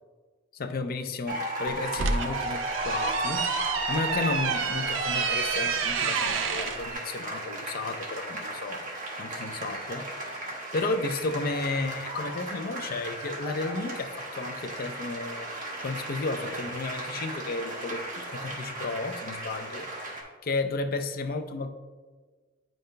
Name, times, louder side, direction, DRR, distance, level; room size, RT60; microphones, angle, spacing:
voice 1, 0.5-3.5 3.9-8.9 9.2-10.1 10.7-15.5 15.8-19.9 20.4-21.7, left 3 dB, 50° left, 6 dB, 0.5 m, -33 dB
sound 1, 1.3-20.2, right 1 dB, 45° right, 1.3 m, -36 dB
sound 2, 1.7-6.8, right 5 dB, 65° right, 0.4 m, -29 dB
9.0 x 5.2 x 2.2 m, 1.4 s
head